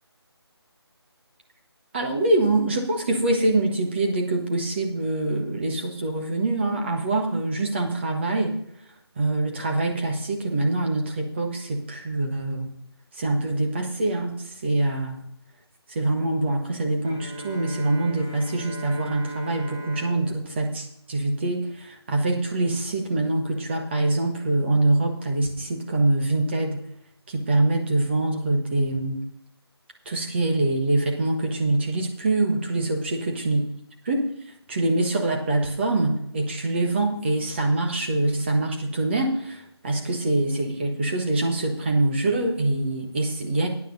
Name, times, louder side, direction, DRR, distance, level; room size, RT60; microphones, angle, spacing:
voice 1, 1.9-8.6 9.1-12.7 13.1-15.2 15.9-26.8 27.3-29.2 30.0-33.6 34.0-34.2 34.7-43.7, right 2 dB, 25° right, 2 dB, 1.5 m, -24 dB
Bowed string instrument, 17.0-22.0, equal, 5° left, 0.3 m, -39 dB
9.5 x 9.1 x 5.3 m, 0.70 s
figure-of-eight pair, 170°, 14 cm